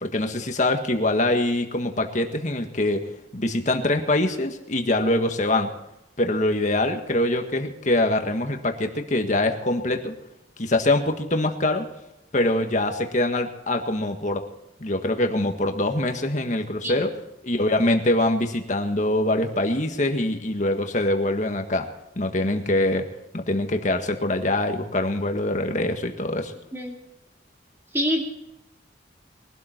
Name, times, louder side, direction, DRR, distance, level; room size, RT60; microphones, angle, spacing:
voice 1, 0.0-3.0 3.3-5.7 6.2-10.1 10.6-11.8 12.3-14.4 14.8-17.1 17.4-21.8 22.1-23.1 23.3-26.5, left 1 dB, 40° left, 5 dB, 1.7 m, -24 dB
voice 2, 27.9-28.3, equal, 15° right, 0 dB, 2.8 m, -25 dB
22.0 x 12.5 x 4.5 m, 0.89 s
head